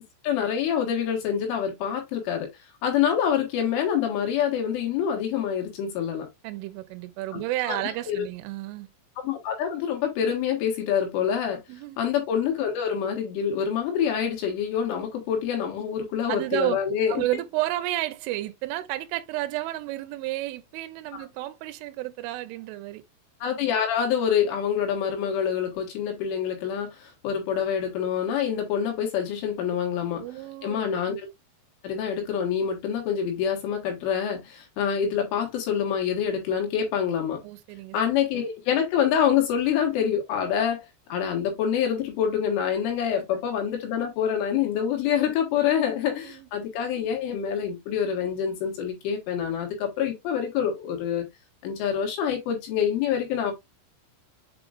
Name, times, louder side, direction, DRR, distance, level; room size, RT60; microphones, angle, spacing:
voice 1, 0.2-2.5 2.8-6.3 7.3-7.4 7.7-7.8 8.1-8.3 9.2-11.6 12.0-17.2 21.1-21.2 23.4-30.2 30.6-31.3 31.8-37.4 37.9-40.8 41.1-51.3 51.6-53.5, left 8 dB, 75° left, 4.1 m, -26 dB
voice 2, 6.4-8.9 11.7-12.0 16.3-16.8 17.1-23.0 30.2-30.9 37.4-38.0 46.1-46.5, right 16 dB, 80° right, 3.2 m, -31 dB
7.7 x 5.0 x 2.4 m
omnidirectional pair, 5.8 m